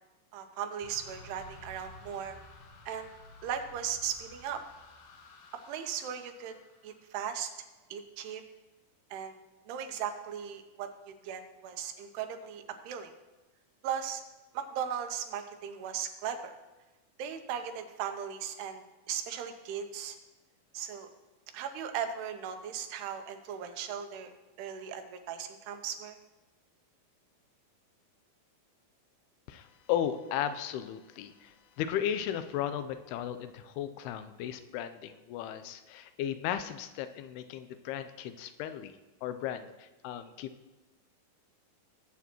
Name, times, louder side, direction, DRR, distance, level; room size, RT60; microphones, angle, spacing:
voice 1, 0.3-2.4 2.9-3.1 3.4-4.6 5.7-6.6 6.8-7.5 7.9-8.4 9.1-9.4 9.7-13.1 13.8-14.2 14.5-16.5 17.2-20.2 20.7-21.1 21.5-24.3 24.6-26.2, right 8 dB, 90° right, 7 dB, 2.9 m, -37 dB
sound 1, 0.8-7.2, left 2 dB, 75° left, 2.9 m, -53 dB
voice 2, 29.5-38.9 39.2-40.5, left 10 dB, 90° left, 11 dB, 2.6 m, -35 dB
19.0 x 8.3 x 3.0 m, 1.1 s
omnidirectional pair, 4.5 m